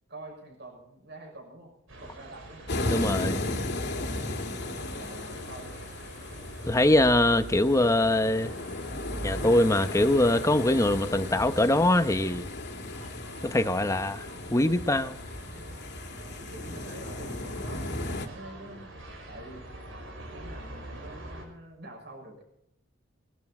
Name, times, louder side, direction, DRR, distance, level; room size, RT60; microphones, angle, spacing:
voice 1, 0.1-1.7 2.0-2.6 4.9-5.8 14.3-14.5 15.4-17.8 18.2-19.0 19.3-19.6 20.3-22.4, right 1 dB, 60° right, 6.4 m, -46 dB
sound 1, 1.9-21.4, right 1 dB, 85° right, 5.3 m, -45 dB
sound 2, 2.7-18.3, left 2 dB, 60° left, 2.1 m, -35 dB
voice 2, 2.9-3.4 6.7-8.5 9.2-12.5 13.4-15.2, left 1 dB, 15° left, 0.9 m, -23 dB
22.0 x 12.0 x 4.4 m
head